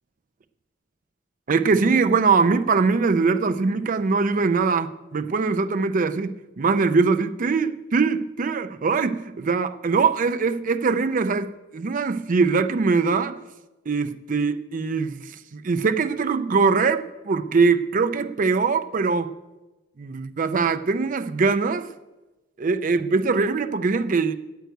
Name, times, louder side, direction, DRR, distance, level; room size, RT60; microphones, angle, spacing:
voice 1, 1.5-13.3 13.9-19.3 20.0-21.9 22.6-24.3, right 4 dB, 45° right, 0.5 m, -22 dB
9.2 x 7.9 x 9.1 m
head